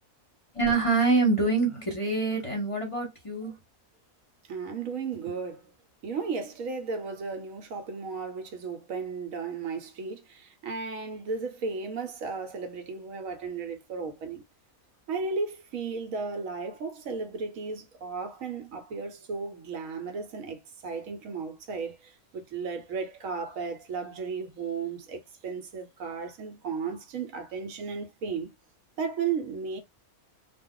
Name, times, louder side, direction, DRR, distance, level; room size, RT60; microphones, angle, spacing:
voice 1, 0.5-3.6, right 3 dB, 25° left, 0.9 m, -25 dB
voice 2, 4.5-5.6 6.0-14.4 15.1-28.5 29.0-29.8, right 5 dB, 70° right, 1.1 m, -34 dB
2.3 x 2.3 x 3.7 m
omnidirectional pair, 1.5 m